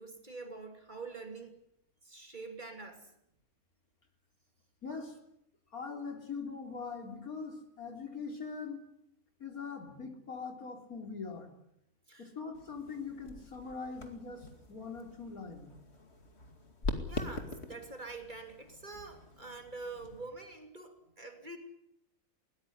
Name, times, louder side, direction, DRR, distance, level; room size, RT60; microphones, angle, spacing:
voice 1, 0.0-1.6 2.0-3.1 12.1-12.3 17.1-21.6, right 3 dB, 30° right, 5 dB, 3.0 m, -46 dB
voice 2, 4.8-5.2 5.7-8.8 9.4-11.5 12.2-15.7, left 5 dB, 80° left, 4 dB, 4.2 m, -42 dB
sound 1, 12.5-20.3, left 3 dB, 45° left, 2.7 m, -43 dB
20.5 x 19.5 x 10.0 m, 0.79 s
omnidirectional pair, 1.5 m